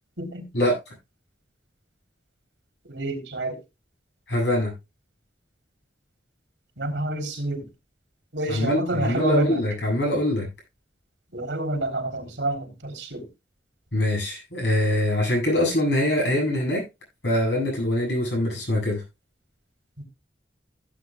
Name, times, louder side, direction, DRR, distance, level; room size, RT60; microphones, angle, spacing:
voice 1, 2.9-3.6 6.8-7.7 8.3-9.6 11.3-13.3 20.0-20.1, right 1 dB, 85° right, 3.4 m, -28 dB
voice 2, 4.3-4.7 8.5-10.5 13.9-16.8 17.2-19.0, left 1 dB, 75° left, 8.0 m, -23 dB
16.0 x 8.7 x 2.3 m
head